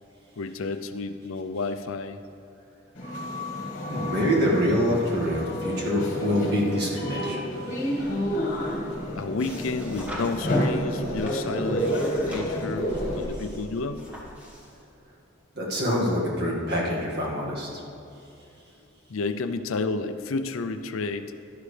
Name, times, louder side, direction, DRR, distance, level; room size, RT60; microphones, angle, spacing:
voice 1, 0.4-2.2 9.1-14.1 19.1-21.3, left 3 dB, 80° left, 10 dB, 0.5 m, -31 dB
sound 1, 3.0-13.2, equal, 40° left, 2.0 m, -29 dB
voice 2, 3.9-7.4 15.6-17.7, equal, 50° right, -4 dB, 2.0 m, -25 dB
sound 2, 8.1-14.8, equal, 5° right, 1.5 m, -41 dB
12.0 x 11.5 x 3.3 m, 2.8 s
head